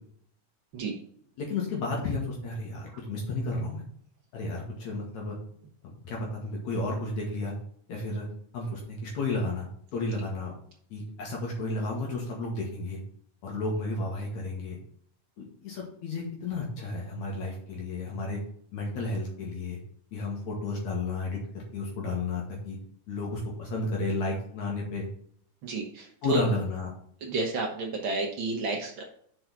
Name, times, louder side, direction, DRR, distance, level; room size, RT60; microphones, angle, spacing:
voice 1, 1.4-3.8 4.3-5.4 5.8-7.5 7.9-8.3 8.5-10.5 10.9-13.0 13.4-14.8 15.4-18.4 18.7-19.8 20.1-22.8 23.1-25.1 26.2-26.9, left 2 dB, 65° left, -1 dB, 2.6 m, -32 dB
voice 2, 25.6-26.4 27.2-29.0, right 3 dB, 85° right, 1 dB, 1.0 m, -31 dB
6.2 x 4.7 x 5.9 m, 0.63 s
omnidirectional pair, 3.8 m